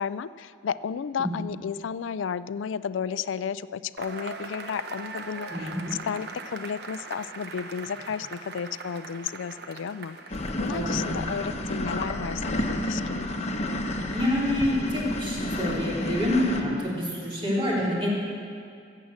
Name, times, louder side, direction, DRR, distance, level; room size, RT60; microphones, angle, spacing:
voice 1, 0.0-5.7 6.0-13.3, left 7 dB, 80° left, 16 dB, 0.4 m, -33 dB
Cheering / Applause / Crowd, 4.0-11.2, right 4 dB, 60° right, 0.9 m, -41 dB
voice 2, 5.5-5.9 10.7-11.1 14.1-18.1, left 1 dB, 25° right, -6 dB, 3.4 m, -27 dB
sound 1, 10.3-16.6, left 1 dB, 35° left, 1.0 m, -30 dB
15.0 x 8.5 x 7.4 m, 2.3 s
head